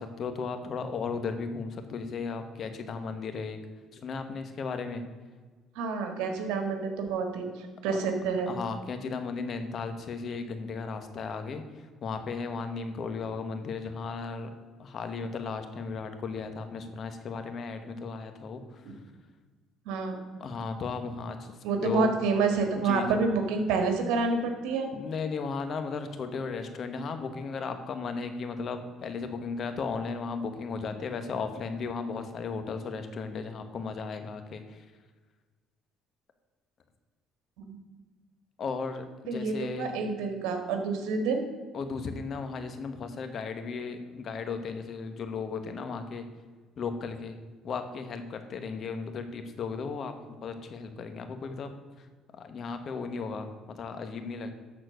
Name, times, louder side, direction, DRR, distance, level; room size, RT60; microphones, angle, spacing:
voice 1, 0.0-3.6 3.9-5.0 8.5-11.6 12.0-14.5 14.8-18.6 20.4-21.5 21.8-22.1 22.8-23.1 24.9-34.8 38.6-39.9 41.7-46.2 46.8-47.4 47.6-51.7 52.4-53.5 53.8-54.5, left 5 dB, 50° left, 8 dB, 1.2 m, -35 dB
voice 2, 5.8-7.5 7.8-8.5 18.9-19.0 19.9-20.2 21.6-24.9 37.6-37.8 39.3-41.4, right 4 dB, 85° right, 5 dB, 1.6 m, -28 dB
13.0 x 4.4 x 6.4 m, 1.4 s
cardioid pair, 100°, 0 cm